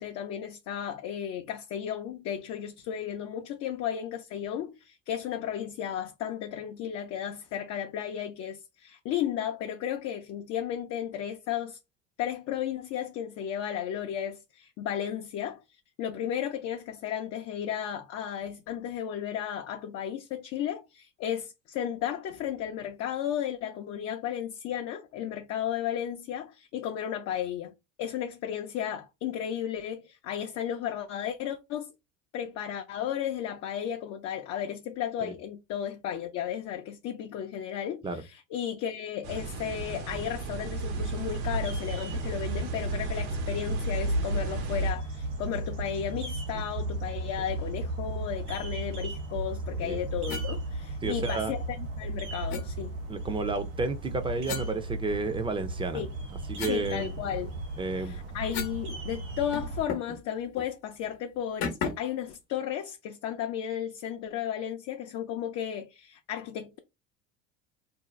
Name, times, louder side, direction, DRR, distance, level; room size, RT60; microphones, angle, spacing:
voice 1, 0.0-11.8 12.2-15.6 16.0-27.7 28.0-31.9 32.3-52.9 55.9-56.1 56.7-57.6 57.9-66.8, left 9 dB, 45° left, 0.5 m, -34 dB
sound 1, 39.2-44.9, right 2 dB, 70° right, 1.0 m, -34 dB
sound 2, 40.7-59.8, right 2 dB, 85° right, 1.2 m, -35 dB
sound 3, 50.3-50.5 52.5-52.7 54.4-55.5 56.0-58.9 59.1-59.2 59.5-60.2 60.5-60.7 61.6-62.2, left 6 dB, 65° left, 0.9 m, -37 dB
voice 2, 51.0-51.5 53.1-56.0 56.5-57.1 57.8-58.2, right 3 dB, 15° right, 0.5 m, -31 dB
2.7 x 2.1 x 3.1 m
hypercardioid pair, 75°, 35 cm